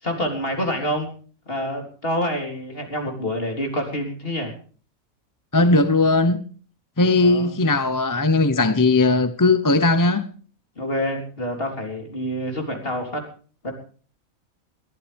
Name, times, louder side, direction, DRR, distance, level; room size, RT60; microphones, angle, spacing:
voice 1, 0.0-1.1 1.5-4.5 7.2-7.5 10.8-13.2 13.6-13.7, equal, 40° left, 4.0 m, -27 dB
voice 2, 5.5-6.4 7.0-10.2, left 3 dB, 20° left, 0.7 m, -18 dB
22.0 x 14.5 x 3.5 m
omnidirectional pair, 1.4 m